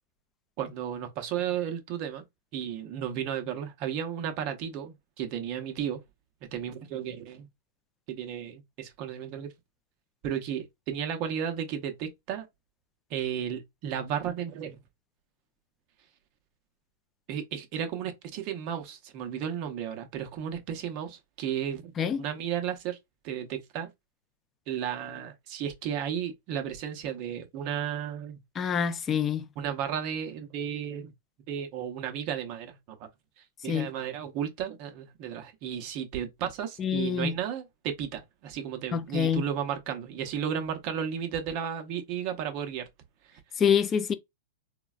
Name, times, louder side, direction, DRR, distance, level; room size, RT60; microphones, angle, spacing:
voice 1, 0.6-2.2 2.5-6.0 6.4-7.5 8.1-9.5 10.2-12.5 13.1-14.8 17.3-21.9 22.2-23.0 23.2-23.9 24.7-28.4 29.6-31.1 31.5-33.0 33.4-42.9 43.2-43.4, right 9 dB, 40° right, 0.7 m, -34 dB
voice 2, 28.6-29.4 33.7-33.9 36.8-37.3 38.9-39.4 43.6-44.2, left 7 dB, 20° left, 0.3 m, -26 dB
3.7 x 2.1 x 2.3 m
hypercardioid pair, 150°, 0 cm